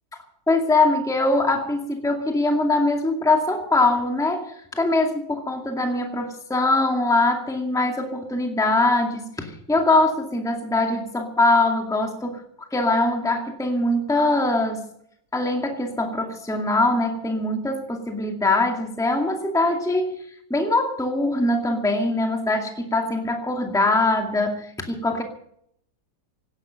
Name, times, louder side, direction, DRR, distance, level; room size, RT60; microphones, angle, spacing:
voice 1, 0.5-12.4 12.7-14.8 15.3-25.2, left 2 dB, ahead, 3 dB, 2.1 m, -22 dB
18.0 x 11.5 x 6.7 m, 0.69 s
omnidirectional pair, 1.9 m